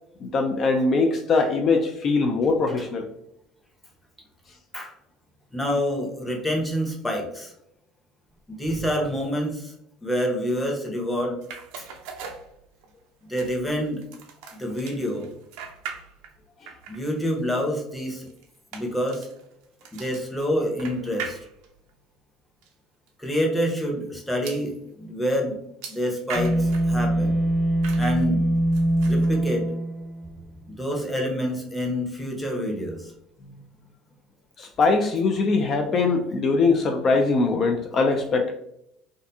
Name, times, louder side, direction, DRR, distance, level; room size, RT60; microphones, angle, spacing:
voice 1, 0.2-3.1 34.6-38.5, left 3 dB, 45° left, 3 dB, 0.3 m, -22 dB
voice 2, 5.5-7.5 8.5-9.7 10.0-11.4 11.8-11.9 13.3-14.0 14.6-15.3 16.9-18.3 18.7-19.3 19.9-21.4 23.2-25.5 25.9-27.3 28.0-28.4 29.0-29.7 30.7-33.1, equal, 10° left, 0 dB, 0.8 m, -27 dB
sound 1, 11.4-13.0 13.4-16.4 16.7-21.9 22.6-22.7 23.1-23.2 24.5-24.7 25.8-26.9 27.8-28.3 28.7-29.3, right 6 dB, 75° right, 0.4 m, -41 dB
sound 2, 26.3-30.6, right 1 dB, 25° left, 1.4 m, -23 dB
2.5 x 2.5 x 2.2 m, 0.78 s
hypercardioid pair, 80°, 0 cm